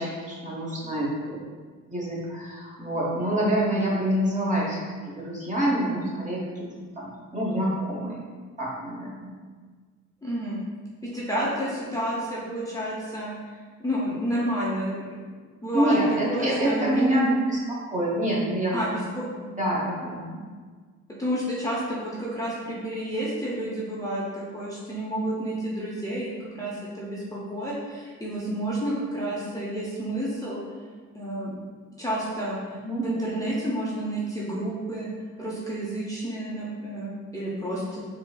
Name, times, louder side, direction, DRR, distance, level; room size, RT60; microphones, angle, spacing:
voice 1, 0.0-1.4 1.9-4.8 5.1-8.2 8.6-9.3 15.7-18.8 19.6-20.4 32.8-33.0, right 1 dB, 25° right, -5 dB, 0.9 m, -26 dB
voice 2, 10.2-10.6 11.0-15.0 15.6-16.0 16.3-17.2 18.7-19.5 21.2-30.6 31.1-31.6 32.0-32.6 33.0-35.1 35.4-38.0, right 1 dB, 10° left, -7 dB, 0.6 m, -30 dB
3.8 x 2.5 x 2.3 m, 1.5 s
cardioid pair, 90°, 30 cm